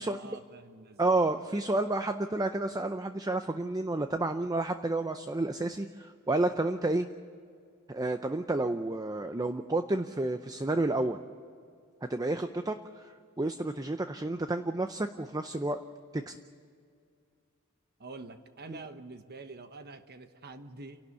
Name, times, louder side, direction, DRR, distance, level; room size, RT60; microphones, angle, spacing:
voice 1, 0.0-1.3 18.0-21.0, right 3 dB, 50° right, 9 dB, 1.2 m, -47 dB
voice 2, 1.0-7.1 7.9-11.2 12.1-15.8 16.1-16.3 18.7-18.8, right 2 dB, 15° right, 8 dB, 0.6 m, -30 dB
29.5 x 12.0 x 8.3 m, 2.2 s
head